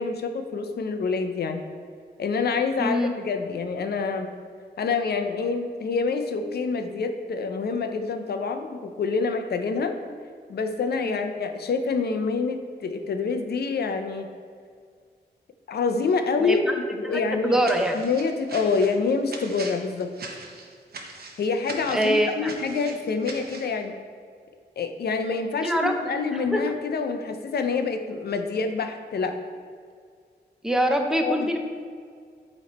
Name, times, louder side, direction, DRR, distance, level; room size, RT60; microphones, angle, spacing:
voice 1, 0.0-1.6 2.2-4.3 4.8-10.0 10.5-14.3 15.7-17.6 17.9-20.1 21.4-24.0 24.8-29.4 31.2-31.5, left 4 dB, 65° left, 7 dB, 0.6 m, -27 dB
voice 2, 2.8-3.1 11.0-11.2 16.4-16.7 17.0-17.9 21.9-22.5 25.6-25.9 26.3-26.6 30.6-31.6, right 1 dB, 5° right, 3 dB, 0.5 m, -24 dB
sound 1, 17.6-23.7, right 3 dB, 60° right, 0.8 m, -41 dB
8.4 x 3.1 x 4.2 m, 2.1 s
wide cardioid pair, 145°, 18 cm